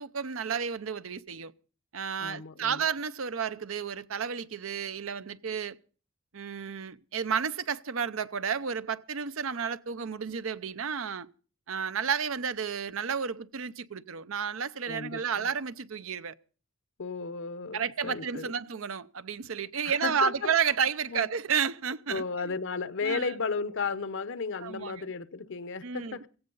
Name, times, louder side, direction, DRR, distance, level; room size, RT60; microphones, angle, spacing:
voice 1, 0.0-1.5 1.9-5.8 6.3-11.3 11.7-16.3 17.7-22.5 23.0-23.3 24.6-25.1 25.8-26.2, right 7 dB, 70° right, 0.7 m, -32 dB
voice 2, 2.2-2.8 14.9-15.5 17.0-18.5 19.8-20.5 21.1-21.3 22.1-26.3, left 5 dB, 65° left, 0.8 m, -34 dB
16.5 x 15.0 x 3.9 m
head